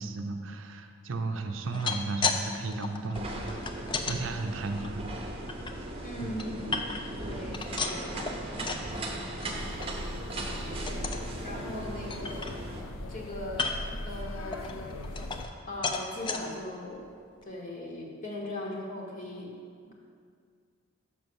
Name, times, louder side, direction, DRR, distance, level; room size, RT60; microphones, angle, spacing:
voice 1, 0.0-5.1 6.2-6.4 8.9-9.1, right 3 dB, 65° right, 5 dB, 0.5 m, -35 dB
sound 1, 1.6-2.4 2.7-4.2 4.7-5.7 6.2-7.2 7.5-8.9 9.2-9.5 9.8-9.9 10.3-10.5 10.9-11.3 11.7-11.8 12.1-12.9 13.5-14.0 14.5-15.6 15.8-16.4 17.0-17.1 17.4-17.5, left 5 dB, 25° left, 0.4 m, -34 dB
sound 2, 3.1-12.8, right 1 dB, 30° right, 0.7 m, -38 dB
voice 2, 6.0-6.6 6.9-8.5 10.8-11.2 11.4-12.6 13.1-17.1 17.4-19.6 19.8-19.9, left 1 dB, 40° left, -3 dB, 1.0 m, -39 dB
sound 3, 9.5-15.5, left 1 dB, 85° left, 0.5 m, -40 dB
5.9 x 5.4 x 6.1 m, 2.1 s
head